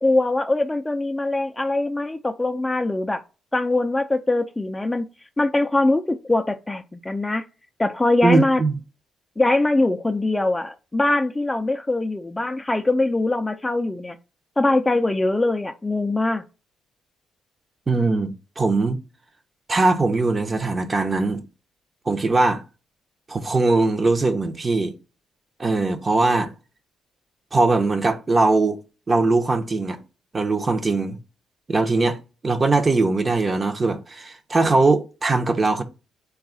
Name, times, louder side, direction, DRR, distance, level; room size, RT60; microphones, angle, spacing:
voice 1, 0.0-3.2 3.5-5.1 5.4-7.4 7.8-8.6 9.4-14.2 14.6-16.4, left 2 dB, 15° left, 0.4 m, -22 dB
voice 2, 8.2-8.8 17.9-19.0 19.7-21.5 22.1-22.6 23.3-24.9 25.6-26.5 27.5-28.8 29.1-30.0 30.3-31.2 31.7-35.8, right 3 dB, 30° right, 0.6 m, -21 dB
3.9 x 2.3 x 3.7 m
cardioid pair, 90°, 0 cm